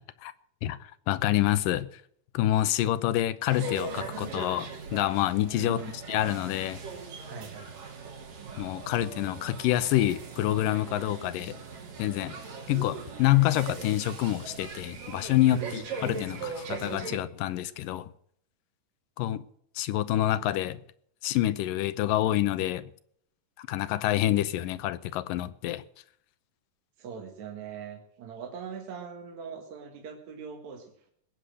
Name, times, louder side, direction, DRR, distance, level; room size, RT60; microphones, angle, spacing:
voice 1, 0.6-1.9 2.3-5.8 6.1-6.8 8.6-11.5 12.0-12.4 12.7-18.1 19.2-19.4 19.8-20.8 21.2-22.8 23.6-25.8, left 14 dB, 80° left, 2.4 m, -27 dB
sound 1, 3.5-17.2, right 4 dB, 75° right, 4.9 m, -40 dB
voice 2, 5.5-6.0 7.2-7.7 15.4-15.9 27.0-31.1, right 5 dB, 60° right, 2.8 m, -41 dB
20.5 x 8.4 x 6.3 m
omnidirectional pair, 3.9 m